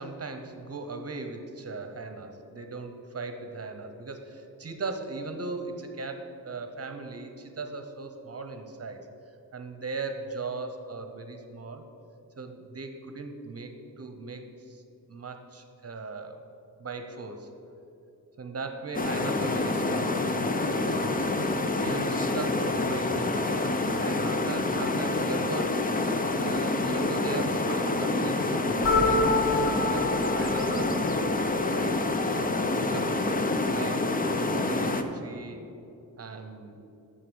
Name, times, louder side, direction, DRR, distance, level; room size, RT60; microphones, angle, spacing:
voice 1, 0.0-9.0 9.5-11.8 12.4-14.8 15.1-16.4 16.8-17.5 18.4-20.2 20.6-25.8 26.4-28.7 29.0-32.3 32.8-34.1 34.5-35.6 36.2-36.8, right 3 dB, 40° right, 6 dB, 0.9 m, -38 dB
sound 1, 18.9-35.0, left 2 dB, 25° left, 0.6 m, -27 dB
sound 2, 28.8-31.7, left 3 dB, 60° left, 2.5 m, -28 dB
9.3 x 6.9 x 7.0 m, 2.7 s
wide cardioid pair, 135°, 37 cm